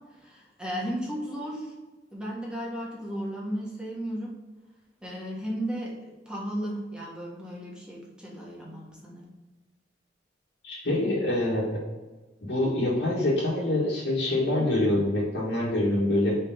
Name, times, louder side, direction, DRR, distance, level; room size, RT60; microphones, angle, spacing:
voice 1, 0.2-1.7 2.1-4.3 5.0-5.9 6.2-9.3, equal, 5° right, -5 dB, 1.5 m, -34 dB
voice 2, 10.6-11.8 12.4-16.4, left 1 dB, 70° left, -10 dB, 1.9 m, -25 dB
5.0 x 4.7 x 5.0 m, 1.2 s
head